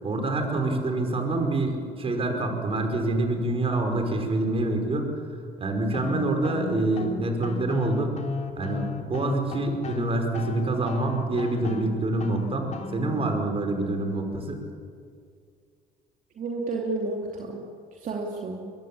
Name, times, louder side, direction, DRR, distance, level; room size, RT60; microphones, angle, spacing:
voice 1, 0.0-5.1 5.6-8.1 8.6-14.6, right 2 dB, 35° right, 4 dB, 5.0 m, -26 dB
sound 1, 5.9-13.3, left 4 dB, 45° left, 2.8 m, -35 dB
voice 2, 16.4-17.6 17.9-18.7, right 3 dB, 50° right, 0 dB, 3.0 m, -31 dB
23.0 x 21.5 x 8.8 m, 2.2 s
cardioid pair, 110°, 17 cm